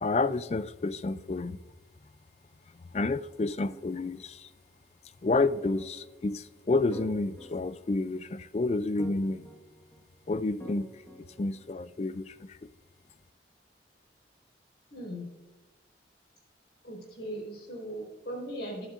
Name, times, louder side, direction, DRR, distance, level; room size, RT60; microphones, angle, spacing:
voice 1, 0.0-1.6 2.7-4.5 5.2-9.5 10.3-10.9 11.4-12.7, left 3 dB, 35° left, 0.4 m, -30 dB
sound 1, 3.7-4.2 5.3-6.4 6.9-8.3 9.0-10.0 10.6-11.7, right 1 dB, 15° left, 1.5 m, -48 dB
voice 2, 14.9-15.3 16.8-18.9, equal, 70° left, 4.9 m, -38 dB
20.5 x 12.0 x 2.5 m
head